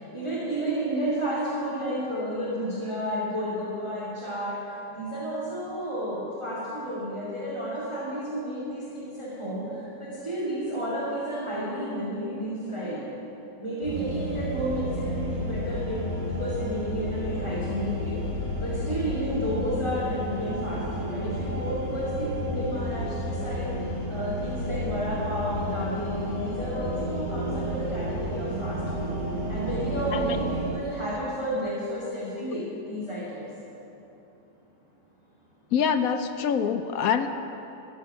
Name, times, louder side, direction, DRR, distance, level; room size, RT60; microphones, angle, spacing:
voice 1, 0.1-4.5 4.9-9.7 10.0-13.0 13.6-18.2 18.6-23.7 24.1-29.1 29.5-33.4, equal, 15° right, -8 dB, 2.4 m, -31 dB
sound 1, 13.8-30.7, equal, 60° right, 3.8 m, -31 dB
voice 2, 35.7-37.3, left 7 dB, 65° left, 9 dB, 1.0 m, -25 dB
14.0 x 11.5 x 5.5 m, 2.9 s
omnidirectional pair, 1.8 m